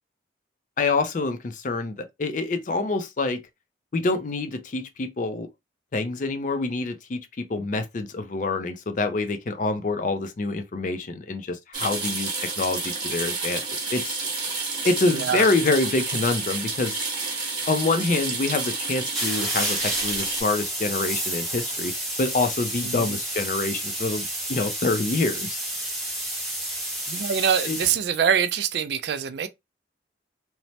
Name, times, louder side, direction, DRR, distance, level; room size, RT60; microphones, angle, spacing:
voice 1, 0.8-3.4 3.9-5.5 5.9-13.6 13.9-14.2 14.8-17.0 17.7-25.6 27.6-27.8, left 3 dB, 40° left, 0.4 m, -26 dB
sound 1, 11.7-20.4, right 3 dB, 25° right, 1.0 m, -30 dB
voice 2, 15.1-15.5 22.8-23.2 27.1-29.5, right 7 dB, 60° right, 0.3 m, -24 dB
sound 2, 19.1-28.0, right 1 dB, ahead, 0.8 m, -30 dB
3.0 x 2.0 x 2.7 m
head